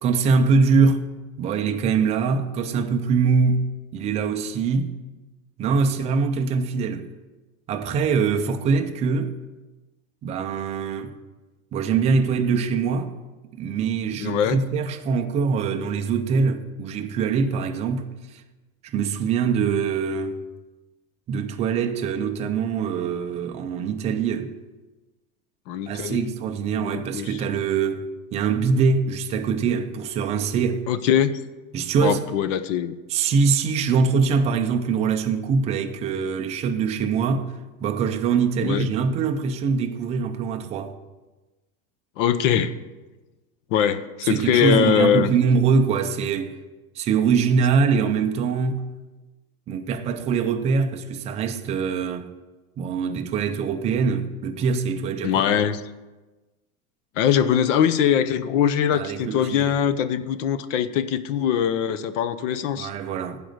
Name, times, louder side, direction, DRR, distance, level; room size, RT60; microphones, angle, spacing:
voice 1, 0.0-1.1 1.4-4.9 5.6-7.1 7.7-9.4 10.2-11.1 11.7-13.1 13.6-18.1 18.9-20.4 21.3-24.5 25.9-30.9 31.7-32.2 33.1-37.5 37.8-40.9 44.3-46.6 47.0-48.8 49.7-52.3 52.8-55.6 58.9-59.8 62.8-63.4, right 5 dB, 15° right, 0.3 m, -23 dB
voice 2, 14.2-14.6 25.7-26.3 26.7-27.4 30.9-31.3 32.0-33.0 38.6-38.9 42.2-42.8 43.7-45.3 55.2-55.8 57.2-62.9, left 9 dB, 60° left, 0.8 m, -22 dB
11.5 x 5.1 x 7.9 m
supercardioid pair, 145°, 42 cm